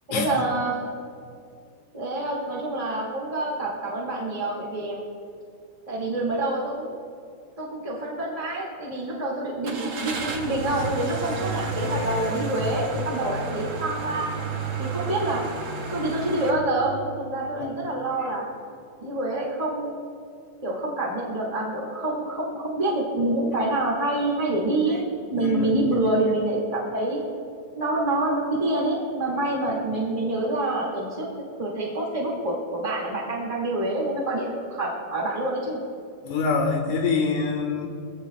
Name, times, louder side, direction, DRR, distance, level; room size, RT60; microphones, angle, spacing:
voice 1, 0.1-0.9 1.9-5.0 5.9-6.9 7.6-14.3 14.8-15.4 15.9-18.4 19.0-20.0 20.6-25.0 25.3-27.2 27.8-31.3 31.6-35.8, right 2 dB, 20° right, -4 dB, 0.9 m, -27 dB
Car / Engine starting, 9.6-16.5, right 3 dB, 65° right, 1.2 m, -31 dB
voice 2, 25.3-25.7 36.2-37.9, left 4 dB, 60° left, 2 dB, 2.5 m, -25 dB
25.0 x 16.5 x 2.4 m, 2.5 s
omnidirectional pair, 4.7 m